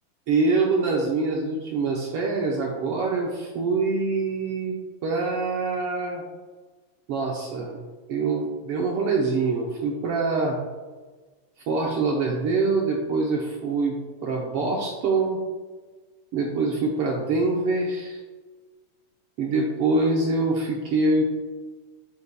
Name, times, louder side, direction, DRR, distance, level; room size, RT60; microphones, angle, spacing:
voice 1, 0.3-4.7 5.0-6.2 7.1-7.8 8.1-10.6 11.7-15.4 16.3-18.2 19.4-21.2, right 3 dB, 70° right, -1 dB, 1.4 m, -24 dB
10.5 x 6.3 x 2.3 m, 1.3 s
omnidirectional pair, 3.4 m